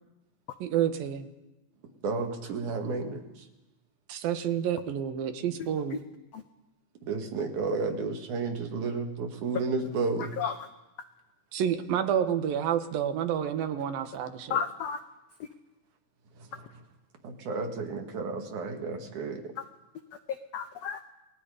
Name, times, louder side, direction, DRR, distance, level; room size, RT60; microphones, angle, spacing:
voice 1, 0.6-1.3 4.1-6.0 11.5-14.6, right 9 dB, 80° right, 8 dB, 3.1 m, -29 dB
voice 2, 2.0-3.2 7.1-10.3 17.2-19.4, right 4 dB, 60° right, 4 dB, 3.3 m, -32 dB
voice 3, 10.2-10.7 14.5-15.0 15.4-15.5 19.6-19.7 20.3-21.0, left 7 dB, 85° left, 9 dB, 1.4 m, -33 dB
29.0 x 20.5 x 5.0 m, 1.0 s
omnidirectional pair, 4.0 m